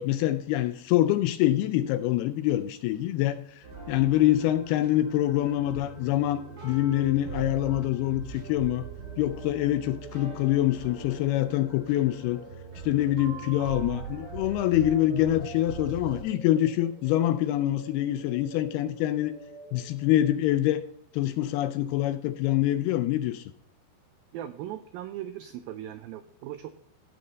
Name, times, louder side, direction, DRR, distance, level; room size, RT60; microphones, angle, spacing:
voice 1, 0.0-8.9 9.2-12.4 12.8-19.3 19.7-20.8 21.1-23.4, left 14 dB, 80° left, 11 dB, 2.4 m, -25 dB
sound 1, 3.6-16.2, right 6 dB, 30° right, 2.1 m, -41 dB
sound 2, 5.6-20.3, right 3 dB, 65° right, 5.7 m, -50 dB
voice 2, 24.3-26.7, right 12 dB, 90° right, 11 dB, 2.0 m, -38 dB
15.5 x 5.8 x 4.0 m, 0.66 s
omnidirectional pair, 4.9 m